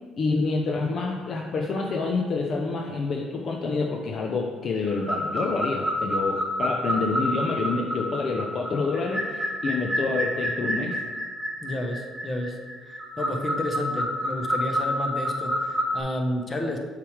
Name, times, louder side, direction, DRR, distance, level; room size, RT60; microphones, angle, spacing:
voice 1, 0.2-11.0, left 3 dB, 50° left, 1 dB, 0.6 m, -27 dB
sound 1, 4.9-16.0, equal, 5° left, 1.2 m, -29 dB
voice 2, 11.6-12.6 12.9-16.8, left 1 dB, 30° left, 2 dB, 0.9 m, -31 dB
6.7 x 3.3 x 4.8 m, 1.5 s
supercardioid pair, 80°, 0 cm